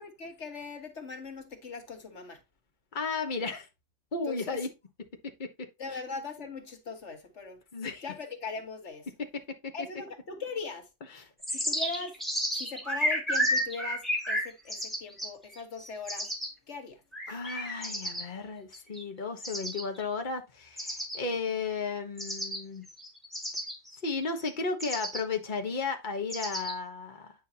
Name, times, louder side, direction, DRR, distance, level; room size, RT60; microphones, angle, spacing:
voice 1, 0.0-2.4 4.3-4.6 5.8-7.6 8.0-9.1 9.7-10.9 11.2-11.3 11.5-12.1 12.5-16.3 16.7-17.0 17.3-17.4, left 4 dB, 70° left, 2.0 m, -40 dB
voice 2, 2.9-3.7 4.1-4.7 5.4-6.0 7.7-8.0 11.1-11.6 17.3-22.8 24.0-27.3, left 4 dB, 40° left, 1.4 m, -34 dB
sound 1, 11.4-16.5 17.1-18.2 18.7-19.0 19.4-20.0 20.8-21.2 22.2-22.6 22.9-24.5 24.8-25.2 26.3-26.7, equal, ahead, 2.4 m, -32 dB
9.6 x 5.6 x 2.9 m
omnidirectional pair, 1.2 m